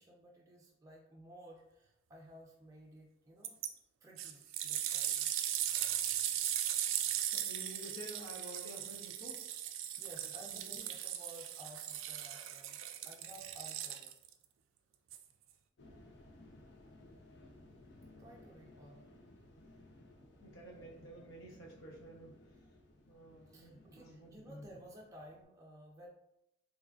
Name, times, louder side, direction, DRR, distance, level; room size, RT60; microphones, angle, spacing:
voice 1, 0.0-3.6 4.0-5.3 10.0-12.8 13.1-14.1 18.2-19.0 22.6-22.7 23.5-26.1, right 1 dB, 15° right, -2 dB, 0.4 m, -55 dB
sound 1, 3.4-3.7 4.2-14.3 15.1-15.2, right 11 dB, 80° right, 0.3 m, -38 dB
voice 2, 7.3-9.4 10.5-10.8 20.4-22.3 23.1-24.7, equal, 75° left, -2 dB, 1.0 m, -51 dB
sound 2, 15.8-25.4, left 1 dB, 55° left, 0.5 m, -59 dB
3.6 x 3.1 x 2.4 m, 0.81 s
head